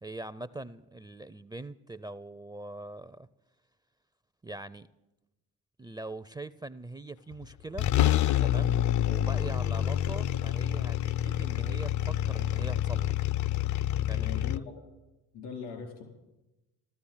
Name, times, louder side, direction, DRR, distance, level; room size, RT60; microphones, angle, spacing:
voice 1, 0.0-3.3 4.4-4.9 5.8-7.9 8.4-13.2 14.1-14.3, right 2 dB, 10° right, 15 dB, 0.4 m, -42 dB
sound 1, 7.3-7.4 7.8-14.6, left 12 dB, 45° left, 0.5 m, -27 dB
voice 2, 14.1-14.8 15.3-16.0, left 6 dB, 85° left, 4 dB, 4.6 m, -40 dB
15.0 x 13.0 x 7.3 m, 1.0 s
hypercardioid pair, 65°, 41 cm